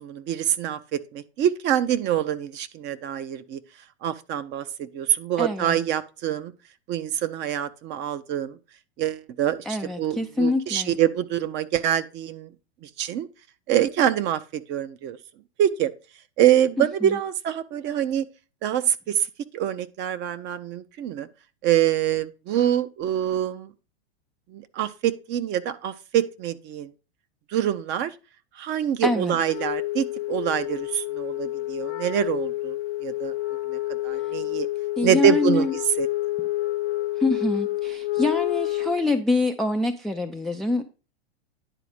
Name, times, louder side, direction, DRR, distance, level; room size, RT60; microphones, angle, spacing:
voice 1, 0.0-3.6 4.0-6.5 6.9-8.6 9.0-12.5 12.8-13.3 13.7-15.2 15.6-15.9 16.4-18.3 18.6-19.3 19.5-21.3 21.6-23.7 24.5-26.9 27.5-28.1 28.6-33.3 33.7-34.7 35.0-35.7 36.0-36.1, right 10 dB, 35° right, 0.7 m, -25 dB
voice 2, 5.4-5.8 9.7-11.0 16.8-17.2 29.0-29.4 35.0-35.7 37.2-40.8, left 2 dB, ahead, 0.3 m, -25 dB
Wind instrument woodwind instrument, 29.4-39.1, left 17 dB, 65° left, 0.6 m, -29 dB
10.0 x 4.2 x 4.9 m
hypercardioid pair, 115°, 32 cm